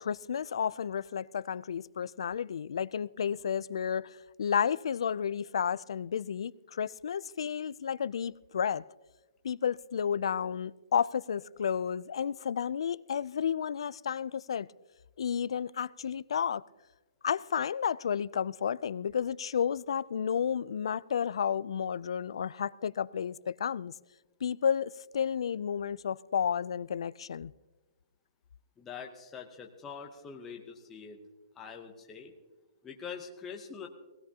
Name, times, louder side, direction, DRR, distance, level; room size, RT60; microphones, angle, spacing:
voice 1, 0.0-8.8 9.4-14.7 15.2-16.6 17.2-23.9 24.4-27.5, left 7 dB, 65° left, 0.3 m, -32 dB
voice 2, 28.8-31.2 31.6-32.3 32.8-33.9, left 6 dB, 10° left, 0.7 m, -44 dB
20.0 x 16.5 x 2.8 m
hypercardioid pair, 180°, 3 cm